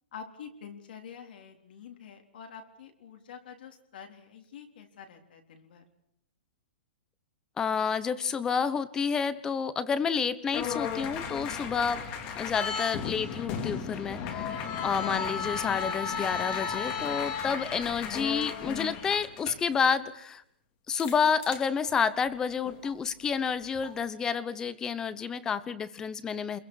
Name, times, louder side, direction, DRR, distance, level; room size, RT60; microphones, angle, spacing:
voice 1, 0.1-5.8, left 7 dB, 60° left, 3 dB, 3.9 m, -47 dB
voice 2, 7.6-12.1 12.4-20.4 20.9-26.6, left 6 dB, 10° left, 16 dB, 0.9 m, -29 dB
sound 1, 10.5-19.7 21.0-21.2 21.4-21.9 22.6-22.9 23.6-23.9, left 6 dB, 25° left, 2.2 m, -34 dB
28.5 x 22.0 x 6.5 m, 0.72 s
hypercardioid pair, 170°, 6 cm